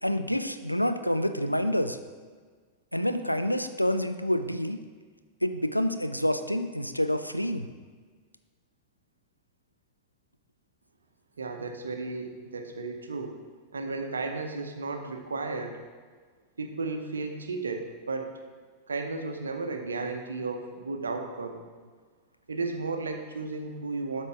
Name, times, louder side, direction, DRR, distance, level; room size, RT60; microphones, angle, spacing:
voice 1, 0.0-2.0 2.9-4.8 5.4-7.7, equal, 90° left, 9 dB, 0.4 m, -27 dB
voice 2, 11.4-13.4 13.7-15.8 16.6-18.3 18.9-21.6 22.5-24.3, right 3 dB, 75° right, 5 dB, 0.7 m, -34 dB
12.0 x 4.5 x 3.5 m, 1.5 s
figure-of-eight pair, 90°, 0 cm